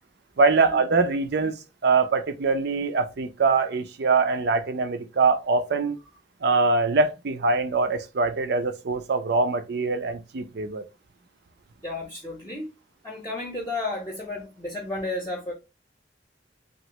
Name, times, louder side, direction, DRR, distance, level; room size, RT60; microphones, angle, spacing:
voice 1, 0.4-1.5 1.8-6.0 6.4-10.8, right 4 dB, 65° right, 0.5 m, -23 dB
voice 2, 11.8-12.7 13.0-15.5, left 2 dB, 10° left, 0.8 m, -32 dB
2.9 x 2.5 x 3.0 m
head